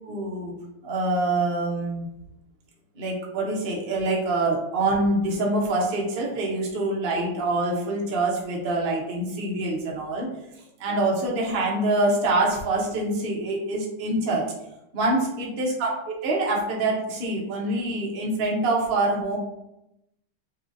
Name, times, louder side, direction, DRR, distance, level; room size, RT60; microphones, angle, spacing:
voice 1, 0.0-0.5 0.8-2.1 2.9-10.3 10.8-14.5 14.9-19.4, right 2 dB, 45° right, -3 dB, 0.7 m, -25 dB
7.2 x 2.5 x 2.7 m, 0.86 s
omnidirectional pair, 2.4 m